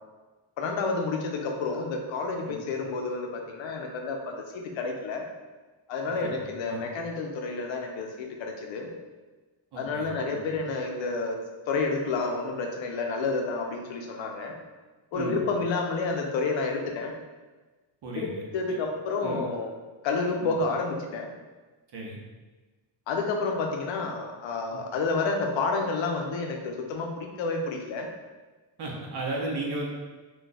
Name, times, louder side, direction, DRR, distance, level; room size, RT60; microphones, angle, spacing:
voice 1, 0.6-5.2 5.9-8.9 9.8-11.4 11.7-14.5 15.1-17.1 18.1-19.7 20.0-21.3 23.1-28.1, left 3 dB, 70° left, 2 dB, 0.6 m, -30 dB
voice 2, 6.4-6.8 9.7-10.4 15.1-15.4 18.0-18.4 19.2-19.4 20.4-20.5 21.9-22.2 24.7-24.8 28.8-29.9, right 2 dB, 55° right, -1 dB, 0.8 m, -35 dB
2.4 x 2.3 x 4.0 m, 1.3 s
cardioid pair, 135°, 47 cm